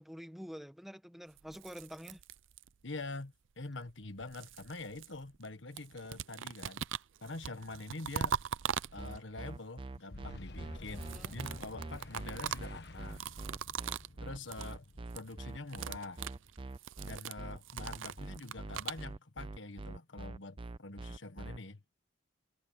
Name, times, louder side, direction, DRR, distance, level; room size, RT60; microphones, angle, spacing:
voice 1, 0.0-2.2 10.9-11.3, equal, ahead, 1.2 m, -47 dB
sound 1, 1.4-2.9 3.9-5.5 5.8-9.4 10.8-14.2 14.4-14.7 15.0-15.3 15.6-19.0, right 8 dB, 85° right, 0.5 m, -41 dB
voice 2, 2.8-6.9 7.2-8.4 8.9-13.2 14.2-14.8 15.1-16.2 17.0-21.8, left 2 dB, 75° left, 1.5 m, -45 dB
sound 2, 9.0-21.6, right 2 dB, 25° right, 0.5 m, -44 dB
Boom, 10.1-16.6, left 1 dB, 55° left, 1.5 m, -51 dB
head